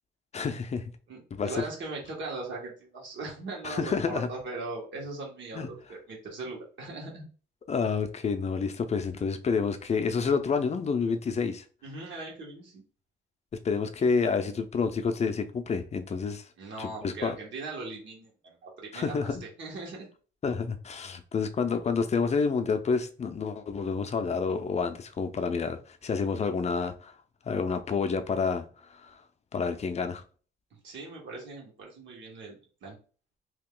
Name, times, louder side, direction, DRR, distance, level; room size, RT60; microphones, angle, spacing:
voice 1, 0.3-0.9 1.3-1.7 3.6-4.3 5.5-5.7 7.7-11.6 13.6-16.4 16.8-17.4 18.9-19.4 20.4-27.1 27.5-28.7 29.0-29.2 29.5-30.2, left 5 dB, 35° left, 0.5 m, -29 dB
voice 2, 1.1-7.3 11.8-12.8 16.6-20.1 30.7-33.0, right 3 dB, 70° right, 1.5 m, -40 dB
2.9 x 2.4 x 3.7 m
cardioid pair, 90°, 20 cm